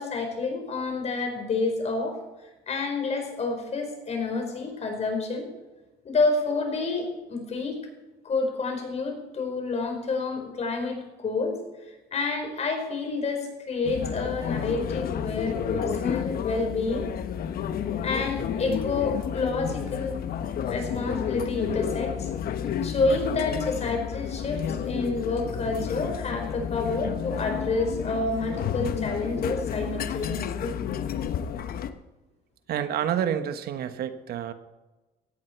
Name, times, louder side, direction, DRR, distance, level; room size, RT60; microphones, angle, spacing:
voice 1, 0.0-2.2 2.7-5.5 6.0-7.8 8.2-11.6 12.1-17.1 18.0-20.2 20.7-22.3 22.8-30.7, left 3 dB, 40° left, 4 dB, 4.9 m, -29 dB
sound 1, 13.8-31.9, left 8 dB, 60° left, 1.1 m, -31 dB
voice 2, 32.7-34.5, right 9 dB, 65° right, 9 dB, 1.3 m, -28 dB
18.0 x 14.0 x 4.6 m, 1.1 s
cardioid pair, 110°, 17 cm